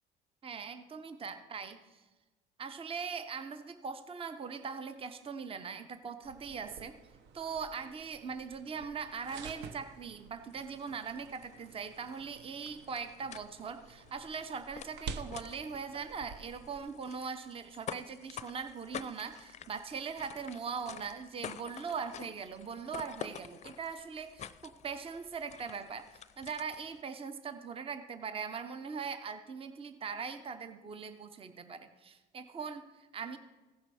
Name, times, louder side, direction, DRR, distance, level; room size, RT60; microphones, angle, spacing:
voice 1, 0.4-2.0 2.6-6.9 7.3-26.1 26.4-33.4, right 6 dB, 30° right, 10 dB, 0.7 m, -41 dB
sound 1, 6.2-16.8, right 5 dB, 70° right, 0.8 m, -50 dB
sound 2, 10.5-27.0, left 8 dB, 40° left, 0.5 m, -49 dB
15.5 x 5.6 x 4.8 m, 1.2 s
supercardioid pair, 90°, 19 cm